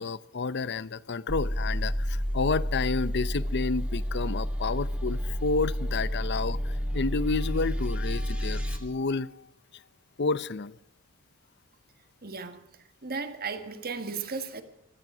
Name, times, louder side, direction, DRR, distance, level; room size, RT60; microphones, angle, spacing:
voice 1, 0.0-9.3 10.2-10.8, left 4 dB, 55° left, 0.7 m, -30 dB
sound 1, 1.3-8.8, equal, 5° right, 2.7 m, -30 dB
voice 2, 12.2-14.6, right 4 dB, 45° right, 1.6 m, -36 dB
17.0 x 13.5 x 6.1 m
head